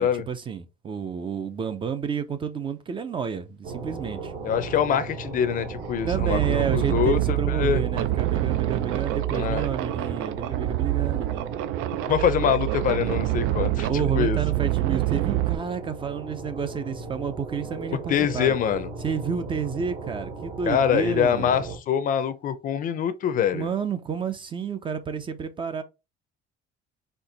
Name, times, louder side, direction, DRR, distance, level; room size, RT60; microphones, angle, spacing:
voice 1, 0.0-4.3 6.0-11.6 13.9-18.5 19.0-21.6 23.5-25.8, right 6 dB, 25° right, 0.4 m, -30 dB
sound 1, 3.6-21.8, right 3 dB, 60° right, 1.2 m, -37 dB
voice 2, 4.4-7.8 9.3-9.7 12.1-14.4 18.1-18.9 20.7-23.7, left 8 dB, 40° left, 0.5 m, -24 dB
sound 2, 5.1-5.2 5.7-15.6, right 16 dB, 80° right, 0.5 m, -26 dB
4.4 x 2.8 x 3.9 m
cardioid pair, 165°, 21 cm